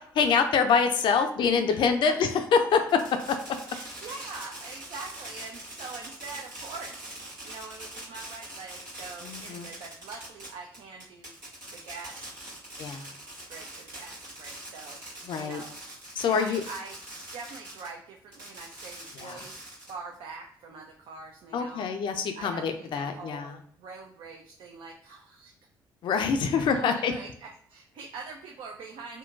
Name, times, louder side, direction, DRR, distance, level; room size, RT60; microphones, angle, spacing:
voice 1, 0.2-2.8 9.2-9.7 12.8-13.1 15.3-15.6 16.2-16.6 19.2-19.4 21.5-23.6 26.0-27.1, left 6 dB, 50° left, 7 dB, 0.4 m, -25 dB
voice 2, 1.2-1.8 2.0-2.2 3.7-11.3 11.7-12.6 13.5-15.0 15.4-15.8 16.2-17.0 17.3-19.5 19.9-21.9 22.4-25.5 26.5-29.2, right 4 dB, 60° right, 1 dB, 0.5 m, -43 dB
Fireworks, 2.7-17.9 18.3-20.2, right 1 dB, 85° right, 1.4 m, -43 dB
3.7 x 2.2 x 2.6 m, 0.64 s
figure-of-eight pair, 45°, 10 cm